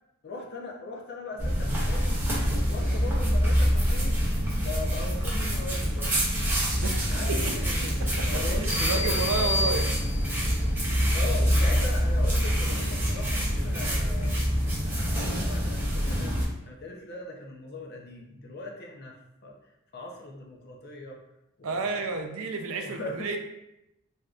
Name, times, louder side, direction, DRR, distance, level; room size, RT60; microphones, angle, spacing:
voice 1, 0.2-2.2 2.7-4.2 4.6-6.2 7.1-7.9 8.2-9.7 11.1-14.4 14.8-19.5 19.9-21.2 21.6-22.2 22.8-23.3, left 2 dB, 45° left, 1 dB, 0.5 m, -40 dB
sound 1, 1.4-16.5, equal, 10° right, 0.6 m, -26 dB
voice 2, 6.7-7.4 8.0-8.4 8.8-9.9 21.6-23.4, right 4 dB, 75° right, 5 dB, 0.4 m, -31 dB
sound 2, 8.7-10.5, left 2 dB, 70° left, 0.9 m, -31 dB
3.4 x 2.6 x 2.4 m, 0.87 s
head